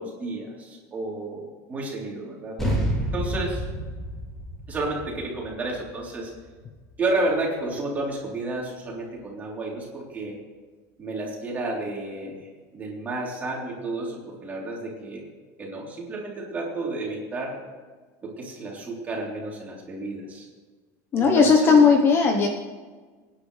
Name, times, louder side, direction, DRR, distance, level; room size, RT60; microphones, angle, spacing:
voice 1, 0.0-2.6 3.1-3.7 4.7-6.3 7.0-10.3 11.0-12.4 12.7-15.2 15.6-17.6 18.2-20.5 21.2-21.9, right 2 dB, 20° right, -3 dB, 3.7 m, -31 dB
sound 1, 2.6-7.4, equal, 5° left, 3.3 m, -30 dB
voice 2, 21.1-22.5, left 5 dB, 30° left, 3 dB, 1.1 m, -17 dB
24.5 x 10.5 x 3.4 m, 1.4 s
cardioid pair, 160°, 8 cm